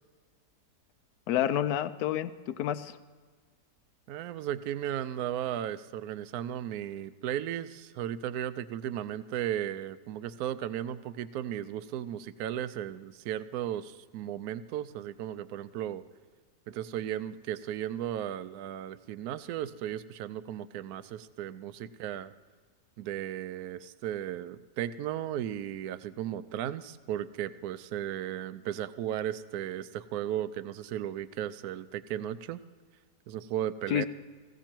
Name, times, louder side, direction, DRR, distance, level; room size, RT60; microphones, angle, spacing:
voice 1, 1.3-3.0 33.9-34.1, left 11 dB, 70° left, 12 dB, 1.0 m, -29 dB
voice 2, 4.1-16.1 16.7-22.3 23.0-32.6 33.3-34.1, right 11 dB, 70° right, 14 dB, 1.0 m, -35 dB
16.5 x 16.0 x 4.4 m, 1.5 s
omnidirectional pair, 1.9 m